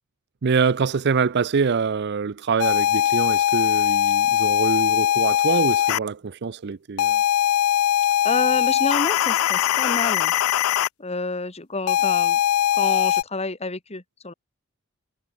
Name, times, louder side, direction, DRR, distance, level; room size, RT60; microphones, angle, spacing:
voice 1, 0.4-7.2, right 5 dB, 55° right, 0.5 m, -24 dB
sound 1, 2.6-6.0 7.0-10.9 11.9-13.2, left 10 dB, 75° left, 0.3 m, -21 dB
voice 2, 8.2-10.3 11.0-12.4 12.8-14.3, left 3 dB, 30° left, 2.5 m, -28 dB
head